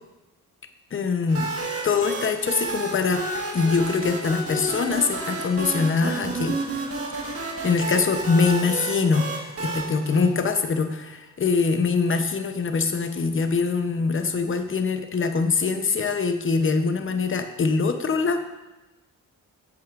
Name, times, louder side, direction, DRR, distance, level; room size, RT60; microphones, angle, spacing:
voice 1, 0.9-1.5 1.8-3.2 3.5-6.6 7.6-18.4, left 4 dB, 35° left, 7 dB, 0.7 m, -23 dB
sound 1, 1.3-10.9, right 2 dB, 40° right, 1.5 m, -31 dB
8.4 x 7.7 x 2.5 m, 1.1 s
cardioid pair, 75°, 35 cm